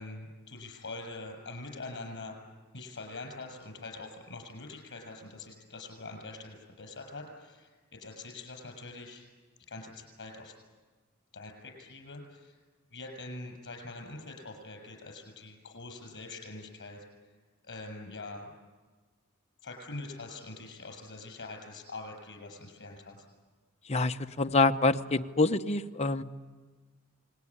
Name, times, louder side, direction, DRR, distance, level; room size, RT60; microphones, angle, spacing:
voice 1, 0.0-2.4 2.7-9.3 9.7-10.6 11.3-12.6 12.9-17.0 17.6-18.5 19.6-23.2, left 2 dB, 55° left, 4 dB, 6.8 m, -44 dB
voice 2, 23.9-26.2, left 3 dB, 30° left, 6 dB, 0.9 m, -26 dB
28.5 x 20.0 x 9.8 m, 1.4 s
head